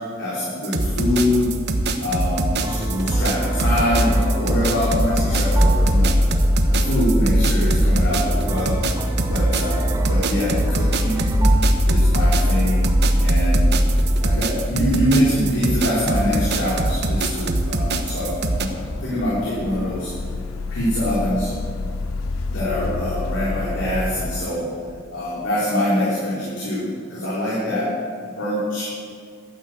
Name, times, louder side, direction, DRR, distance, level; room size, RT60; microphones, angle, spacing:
voice 1, 0.2-1.5 2.0-6.2 6.7-8.8 9.3-11.2 11.9-12.9 13.2-13.7 14.2-20.1 20.7-21.5 22.5-24.7 25.1-27.9 28.4-28.8, left 1 dB, 60° left, -8 dB, 3.7 m, -24 dB
sound 1, 0.6-18.7, right 2 dB, 55° right, 1.0 m, -23 dB
sound 2, 2.6-14.3, equal, 15° right, 0.8 m, -21 dB
sound 3, 15.4-24.4, left 3 dB, 85° left, 0.6 m, -31 dB
12.0 x 9.6 x 7.8 m, 2.1 s
head